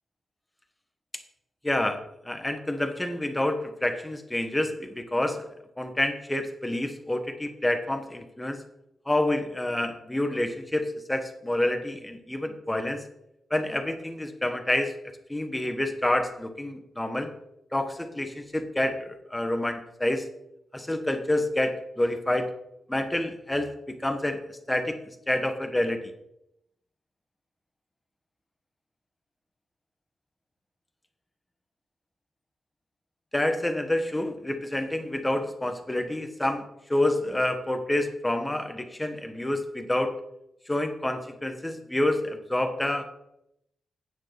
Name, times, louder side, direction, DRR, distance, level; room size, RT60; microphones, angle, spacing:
voice 1, 1.6-5.5 5.8-8.6 9.1-13.0 13.5-15.0 15.3-17.3 17.7-20.3 20.7-22.5 22.9-24.4 24.7-24.9 25.3-26.0 33.3-36.6 36.9-40.2 40.7-43.0, left 1 dB, 15° left, 7 dB, 1.4 m, -28 dB
9.3 x 6.2 x 5.9 m, 0.81 s
cardioid pair, 70°, 0 cm